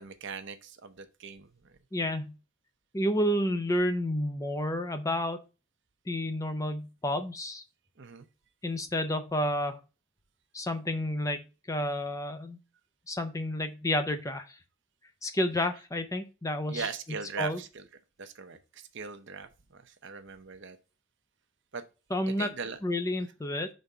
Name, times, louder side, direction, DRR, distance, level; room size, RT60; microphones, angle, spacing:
voice 1, 0.0-1.5 8.0-8.3 16.7-17.9 18.2-20.8 21.7-21.8 22.4-22.8, right 5 dB, 55° right, 0.7 m, -40 dB
voice 2, 1.9-2.3 2.9-5.4 6.1-7.6 8.6-9.8 10.5-12.6 13.1-14.6 15.2-16.9 17.4-17.6 22.1-22.5 22.8-23.7, left 1 dB, 15° left, 0.5 m, -30 dB
5.2 x 3.6 x 5.4 m
head